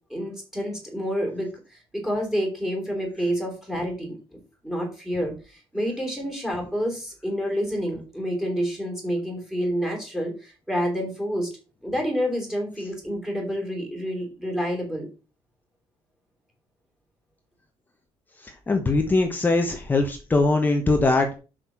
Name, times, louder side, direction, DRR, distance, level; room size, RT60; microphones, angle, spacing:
voice 1, 0.1-11.5 11.8-15.1, equal, 5° right, 0 dB, 3.5 m, -28 dB
voice 2, 18.4-21.4, left 3 dB, 15° left, 4 dB, 1.1 m, -22 dB
6.4 x 5.9 x 6.0 m, 0.33 s
cardioid pair, 150°, 11 cm